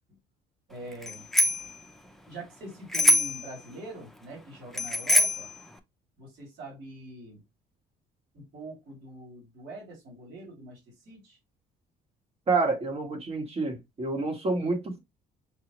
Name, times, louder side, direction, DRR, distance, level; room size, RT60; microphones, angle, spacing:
voice 1, 0.7-1.3 2.3-5.5 6.2-7.4 8.3-11.4, right 2 dB, 70° right, 3.0 m, -44 dB
Bicycle bell, 1.0-1.7 2.9-3.5 4.7-5.5, left 1 dB, ahead, 0.7 m, -23 dB
voice 2, 12.5-15.0, right 3 dB, 35° right, 1.5 m, -28 dB
6.6 x 2.3 x 3.0 m
cardioid pair, 110°, 17 cm